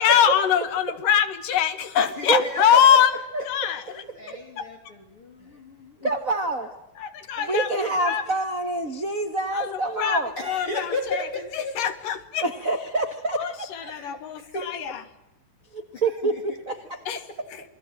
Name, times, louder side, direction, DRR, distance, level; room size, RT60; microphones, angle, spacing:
voice 1, 0.0-3.2 3.4-4.0 4.6-4.7 7.0-7.7 8.0-8.2 9.5-11.3 11.5-12.5 13.3-15.0 17.1-17.6, left 9 dB, 70° left, 10 dB, 3.2 m, -23 dB
voice 2, 1.9-2.8 3.9-6.1 7.5-7.6 10.4-11.8 13.8-14.7 15.9-16.6, left 2 dB, 40° left, 4 dB, 3.4 m, -35 dB
voice 3, 6.0-6.7 7.5-10.3 12.4-13.7 15.7-17.0, right 2 dB, 70° right, 7 dB, 0.7 m, -26 dB
28.0 x 21.0 x 7.6 m, 0.90 s
omnidirectional pair, 4.1 m